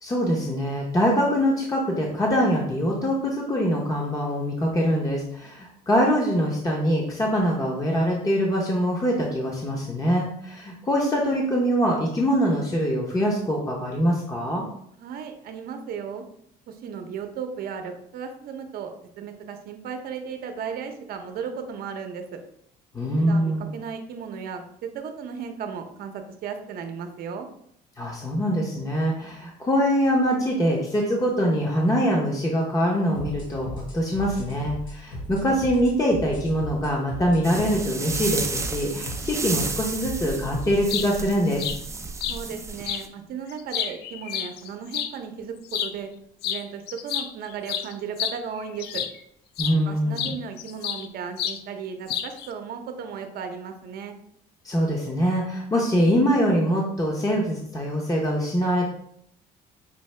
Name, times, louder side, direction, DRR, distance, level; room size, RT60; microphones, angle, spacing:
voice 1, 0.0-14.6 22.9-23.6 28.0-41.6 49.6-50.3 54.6-58.8, equal, 20° left, -2 dB, 0.8 m, -23 dB
voice 2, 15.0-16.2 16.7-18.9 19.2-22.4 23.2-27.5 42.3-46.1 46.4-49.0 49.9-54.1, right 6 dB, 65° right, 6 dB, 0.7 m, -35 dB
sound 1, 33.1-40.9, equal, 55° left, 1.7 m, -37 dB
sound 2, 37.4-43.1, right 3 dB, 15° right, 0.4 m, -32 dB
sound 3, 40.7-41.1 41.6-41.8 42.2-42.4 42.8-43.0 43.5-45.1 45.7-45.9 46.4-46.6 46.9-49.2 49.6-49.8 50.2-51.1 51.4-51.6 52.1-52.5, left 9 dB, 75° left, 0.4 m, -29 dB
5.4 x 2.7 x 3.2 m, 0.70 s
cardioid pair, 110°, 17 cm